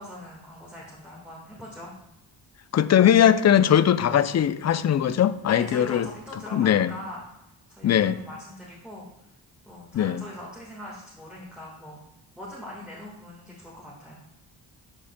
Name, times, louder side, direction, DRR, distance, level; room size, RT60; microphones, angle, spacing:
voice 1, 0.0-1.9 5.5-7.2 7.7-9.4 9.6-12.0 12.3-14.2, left 1 dB, ahead, -5 dB, 1.5 m, -41 dB
voice 2, 2.7-6.1 6.5-6.9 7.8-8.2 9.9-10.2, left 10 dB, 40° left, 14 dB, 0.4 m, -20 dB
11.0 x 5.1 x 2.2 m, 0.88 s
cardioid pair, 65°, 46 cm